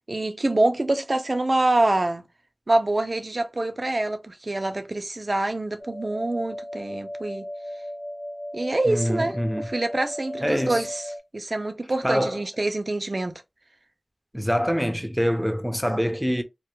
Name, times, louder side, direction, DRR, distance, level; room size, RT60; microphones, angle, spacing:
voice 1, 0.1-2.2 2.7-7.4 8.5-11.0 11.3-13.4, right 2 dB, 60° right, 0.4 m, -25 dB
sound 1, 5.8-11.2, equal, 50° left, 0.7 m, -36 dB
voice 2, 8.9-9.7 10.4-10.9 12.0-12.4 14.3-16.4, equal, ahead, 0.6 m, -25 dB
2.2 x 2.2 x 2.9 m
wide cardioid pair, 40°, 0 cm